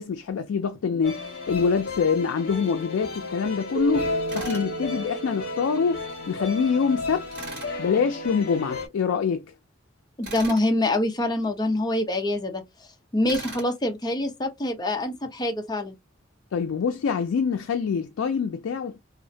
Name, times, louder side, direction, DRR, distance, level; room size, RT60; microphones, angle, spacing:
voice 1, 0.0-7.3 7.8-9.5 16.5-19.0, left 6 dB, 90° left, 0.4 m, -25 dB
sound 1, 1.0-8.9, left 3 dB, 55° left, 1.0 m, -34 dB
Keyboard (musical), 3.7-6.9, right 6 dB, 75° right, 0.6 m, -35 dB
Tools, 4.3-4.7 7.3-7.7 10.2-10.7 13.3-13.7, right 2 dB, 55° right, 1.2 m, -38 dB
voice 2, 10.2-12.6 13.1-15.9, left 1 dB, 20° left, 0.5 m, -25 dB
2.4 x 2.1 x 2.6 m
head